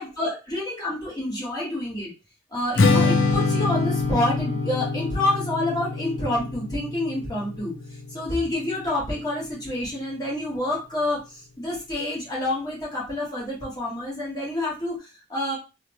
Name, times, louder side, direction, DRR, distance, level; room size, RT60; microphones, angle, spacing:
voice 1, 0.0-2.1 2.5-7.7 8.1-15.6, left 1 dB, 20° left, -6 dB, 1.4 m, -28 dB
Strum, 2.8-9.1, left 3 dB, 75° left, 0.5 m, -25 dB
2.9 x 2.1 x 2.9 m, 0.28 s
head